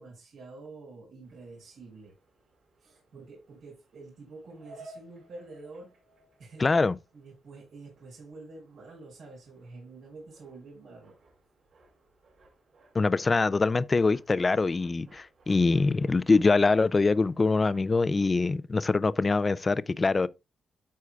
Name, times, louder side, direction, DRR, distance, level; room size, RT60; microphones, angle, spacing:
voice 1, 0.0-2.1 2.8-5.9 6.4-6.7 7.1-11.2, right 3 dB, 85° right, 5.3 m, -47 dB
sound 1, 1.2-18.5, right 2 dB, 55° right, 3.4 m, -58 dB
voice 2, 6.6-7.0 12.9-20.3, left 3 dB, 25° left, 0.4 m, -24 dB
13.0 x 4.7 x 2.4 m
cardioid pair, 115°, 0 cm